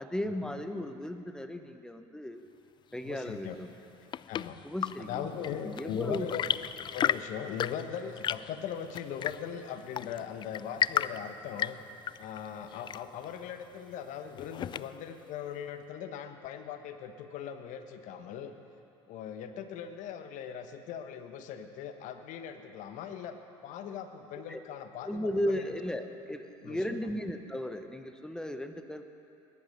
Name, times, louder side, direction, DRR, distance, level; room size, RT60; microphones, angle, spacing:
voice 1, 0.0-2.4 2.9-3.7 4.6-5.3 5.6-6.3 24.5-24.6 25.1-29.1, left 1 dB, 5° left, 7 dB, 1.2 m, -35 dB
voice 2, 3.0-3.5 4.3-4.6 5.0-6.5 6.9-11.8 12.2-18.5 19.1-23.4 23.6-25.7 26.6-27.1, left 8 dB, 60° left, 8 dB, 1.1 m, -40 dB
Chirp tweet / Engine / Tap, 3.7-15.2, left 9 dB, 30° left, 0.3 m, -35 dB
20.5 x 11.0 x 5.4 m, 2.7 s
hypercardioid pair, 75°, 15 cm